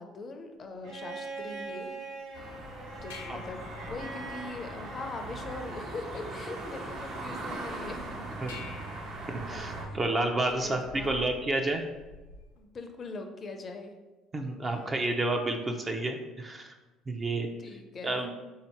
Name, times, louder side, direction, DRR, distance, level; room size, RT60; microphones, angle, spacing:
voice 1, 0.0-1.9 3.0-8.4 9.5-10.0 10.5-11.2 12.5-13.9 14.7-14.8 17.1-18.2, left 3 dB, 45° left, 6 dB, 0.5 m, -42 dB
Bowed string instrument, 0.8-5.9 7.3-7.4, right 3 dB, 75° right, 1.1 m, -43 dB
sound 1, 2.3-9.9, right 2 dB, 55° right, 1.2 m, -40 dB
sound 2, 2.6-12.6, left 4 dB, 90° left, 0.6 m, -50 dB
voice 2, 9.5-11.8 14.3-16.8 17.1-17.5 18.0-18.3, right 2 dB, 30° right, 4 dB, 0.7 m, -30 dB
3.8 x 2.8 x 4.5 m, 1.2 s
hypercardioid pair, 65°, 0 cm